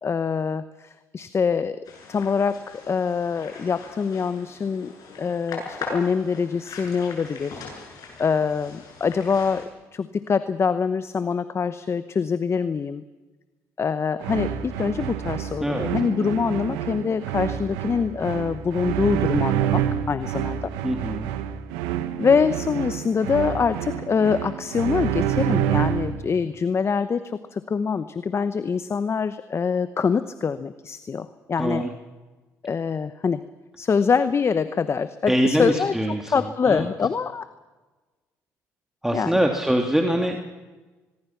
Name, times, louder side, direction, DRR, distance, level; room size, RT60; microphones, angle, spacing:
voice 1, 0.0-1.8 2.1-4.9 5.2-7.6 8.2-9.6 9.9-13.0 13.8-20.7 22.2-31.8 32.6-33.4 33.8-37.5 39.1-39.4, left 5 dB, 40° left, 13 dB, 1.0 m, -24 dB
sound 1, 1.8-9.7, left 4 dB, 65° left, 7.9 m, -40 dB
sound 2, 14.2-26.2, right 10 dB, 85° right, 1.4 m, -27 dB
voice 2, 20.8-21.3 31.6-31.9 35.3-36.3 36.7-36.8 39.0-40.4, equal, 5° right, 2 dB, 2.7 m, -23 dB
25.0 x 21.5 x 5.9 m, 1.2 s
supercardioid pair, 60°, 7 cm